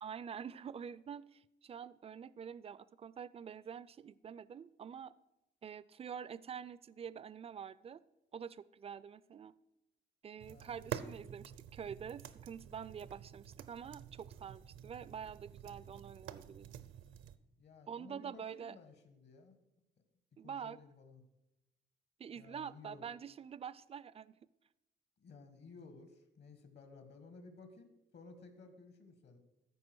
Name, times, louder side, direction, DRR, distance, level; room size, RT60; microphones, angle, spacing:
voice 1, 0.0-5.1 5.6-8.0 8.3-9.5 10.2-16.8 17.9-18.8 20.4-20.8 22.2-24.3, right 7 dB, 30° right, 18 dB, 0.4 m, -46 dB
sound 1, 10.4-17.4, right 9 dB, 80° right, 0.7 m, -49 dB
voice 2, 10.5-10.8 17.6-19.6 20.4-21.2 22.4-23.1 25.2-29.4, left 4 dB, 60° left, 8 dB, 1.7 m, -56 dB
14.0 x 4.7 x 6.2 m, 0.95 s
cardioid pair, 90°, 20 cm